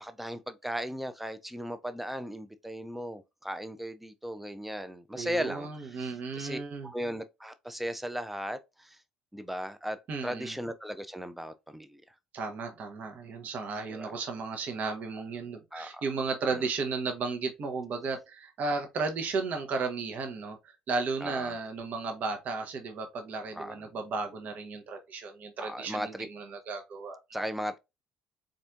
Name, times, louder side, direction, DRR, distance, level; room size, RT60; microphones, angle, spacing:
voice 1, 0.0-9.0 9.3-10.0 10.2-12.0 13.9-14.1 15.7-16.1 16.5-16.6 21.2-21.6 23.5-23.7 25.6-26.3 27.3-27.8, equal, 5° right, 0.5 m, -37 dB
voice 2, 5.1-6.9 10.1-10.5 12.3-27.2, right 4 dB, 45° right, 1.0 m, -34 dB
4.2 x 2.6 x 2.4 m
figure-of-eight pair, 55°, 4 cm